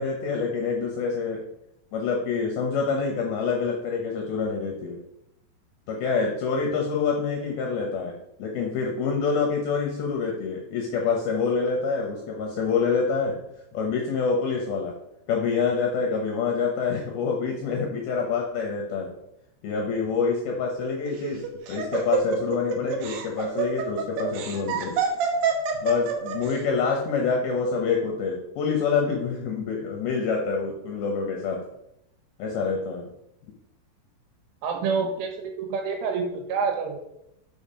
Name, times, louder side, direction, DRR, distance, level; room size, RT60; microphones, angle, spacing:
voice 1, 0.0-1.4 1.9-5.0 5.9-13.4 13.7-14.9 15.3-19.1 19.6-25.0 25.8-31.6 32.4-33.1, left 5 dB, 80° left, 1 dB, 2.2 m, -26 dB
Laughter, 21.1-26.5, right 7 dB, 70° right, 2.7 m, -27 dB
voice 2, 34.6-37.0, right 5 dB, 85° right, 3 dB, 3.8 m, -27 dB
7.2 x 5.1 x 5.5 m, 0.82 s
omnidirectional pair, 5.5 m